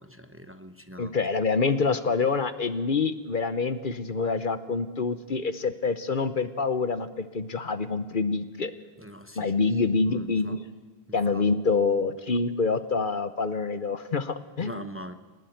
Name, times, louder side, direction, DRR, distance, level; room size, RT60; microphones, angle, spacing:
voice 1, 0.0-1.2 9.0-9.5 10.0-10.6 11.1-11.4 14.6-15.1, equal, 15° right, 8 dB, 1.0 m, -42 dB
voice 2, 1.0-8.7 9.4-10.6 11.1-14.9, left 4 dB, 55° left, 12 dB, 1.1 m, -26 dB
23.5 x 19.0 x 9.3 m, 1.3 s
omnidirectional pair, 1.0 m